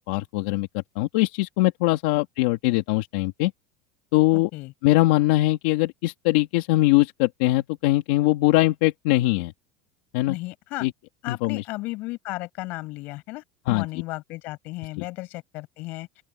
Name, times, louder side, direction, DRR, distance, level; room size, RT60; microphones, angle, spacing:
voice 1, 0.0-3.5 4.1-4.5 4.8-9.5 10.1-10.4 10.8-10.9 11.3-11.6 13.7-13.9 15.0-15.1, left 18 dB, 70° left, 2.6 m, -22 dB
voice 2, 4.3-4.7 10.3-10.9 11.2-16.2, left 21 dB, 45° left, 7.3 m, -35 dB
open air
cardioid pair, 170°, 4 cm